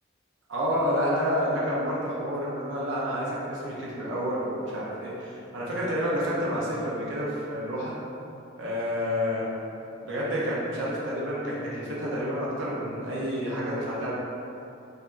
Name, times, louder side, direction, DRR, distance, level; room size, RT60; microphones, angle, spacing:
voice 1, 0.5-8.0 8.6-9.5 10.0-14.1, equal, 70° right, -7 dB, 0.7 m, -29 dB
4.7 x 2.5 x 2.5 m, 2.7 s
head